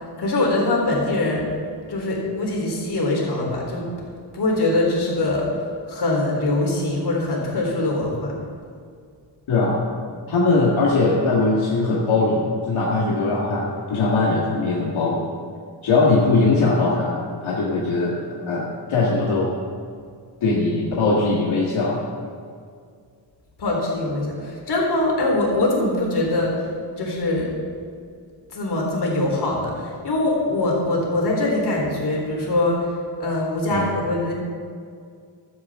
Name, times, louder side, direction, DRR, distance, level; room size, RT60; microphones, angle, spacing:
voice 1, 0.2-1.5 1.9-3.9 4.3-5.5 5.9-8.3 23.6-26.7 27.0-27.5 28.5-32.9 33.2-34.3, left 2 dB, 55° left, -2 dB, 3.9 m, -23 dB
voice 2, 9.5-9.8 10.3-15.3 15.8-17.2 17.4-18.2 18.5-19.5 20.4-22.0 33.7-33.9, left 3 dB, 80° left, -4 dB, 1.8 m, -20 dB
15.0 x 12.5 x 3.7 m, 2.2 s
wide cardioid pair, 140°, 47 cm